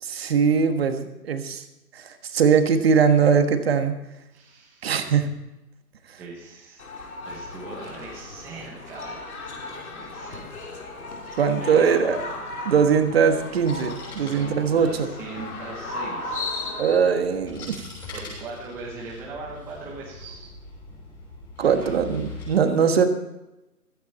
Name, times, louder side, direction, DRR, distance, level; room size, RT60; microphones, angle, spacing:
voice 1, 0.0-1.6 1.9-4.0 4.8-5.3 6.1-6.2 11.3-12.2 12.6-15.1 16.8-17.8 21.6-23.1, right 6 dB, 40° right, 7 dB, 1.5 m, -21 dB
voice 2, 4.3-5.0 6.2-6.8 7.2-10.8 11.6-12.0 14.2-16.7 18.0-20.5 21.6-21.9 22.6-22.9, right 3 dB, 5° right, -4 dB, 0.9 m, -40 dB
sound 1, 6.8-17.0, left 2 dB, 65° left, 3.6 m, -36 dB
sound 2, 13.4-22.5, left 3 dB, 10° left, 5.8 m, -43 dB
16.0 x 14.5 x 4.3 m, 0.95 s
hypercardioid pair, 155°, 46 cm